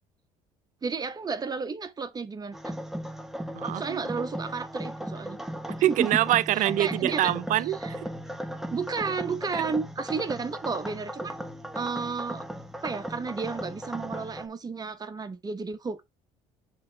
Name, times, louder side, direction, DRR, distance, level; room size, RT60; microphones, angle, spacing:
voice 1, 0.8-2.8 3.7-5.4 5.9-6.0 6.5-7.3 7.8-7.9 8.7-11.3 11.7-12.4 12.8-16.1, right 4 dB, 25° right, 1.2 m, -32 dB
sound 1, 2.5-14.5, equal, ahead, 1.0 m, -37 dB
voice 2, 3.5-4.0 5.8-8.1 9.5-9.6, right 14 dB, 60° right, 0.6 m, -25 dB
6.6 x 3.3 x 5.3 m
supercardioid pair, 70°, 15 cm